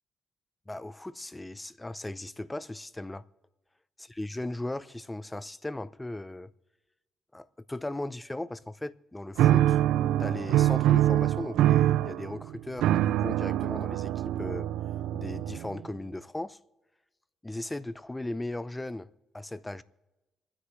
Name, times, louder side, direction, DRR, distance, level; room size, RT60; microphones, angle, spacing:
voice 1, 0.7-3.2 4.2-6.5 7.3-9.8 10.2-14.7 15.1-16.6 17.4-19.8, left 1 dB, 10° left, 0.6 m, -37 dB
sound 1, 9.4-15.9, right 13 dB, 85° right, 0.4 m, -25 dB
27.0 x 9.8 x 3.2 m
cardioid pair, 90°, 0 cm